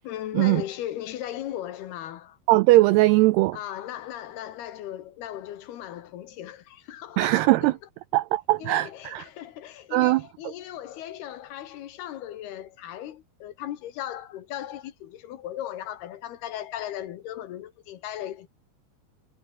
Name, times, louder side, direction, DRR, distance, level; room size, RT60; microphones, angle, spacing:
voice 1, 0.0-2.4 3.5-7.7 8.6-18.5, left 12 dB, 65° left, 3.0 m, -37 dB
voice 2, 2.5-3.6 7.2-7.7 8.1-9.2 9.9-10.2, right 19 dB, 85° right, 2.3 m, -20 dB
omnidirectional pair, 5.3 m